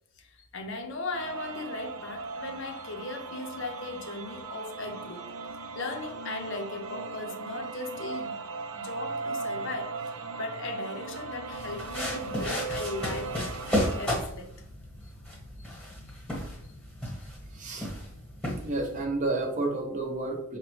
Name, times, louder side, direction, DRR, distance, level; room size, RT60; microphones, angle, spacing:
voice 1, 0.2-5.2 5.7-8.4 8.7-13.4 14.0-14.5 16.1-16.2, left 3 dB, 55° left, 5 dB, 0.5 m, -38 dB
sound 1, 1.1-14.1, right 4 dB, 75° right, 0.4 m, -38 dB
sound 2, 11.5-19.0, equal, 5° left, 1.0 m, -34 dB
voice 2, 17.5-17.9 18.6-20.6, right 2 dB, 35° right, 1 dB, 0.6 m, -31 dB
4.9 x 2.1 x 3.1 m, 0.72 s
head